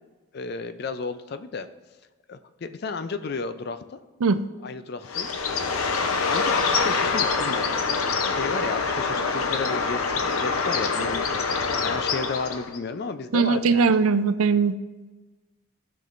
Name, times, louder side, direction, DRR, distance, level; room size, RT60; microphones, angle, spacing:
voice 1, 0.3-1.7 2.3-3.8 4.6-5.4 6.3-13.9, left 4 dB, 50° left, 10 dB, 0.4 m, -33 dB
Bird, 5.0-12.8, left 4 dB, 90° left, 0.7 m, -25 dB
voice 2, 13.3-14.8, right 5 dB, 90° right, 12 dB, 0.5 m, -20 dB
13.5 x 5.9 x 2.5 m, 1.2 s
head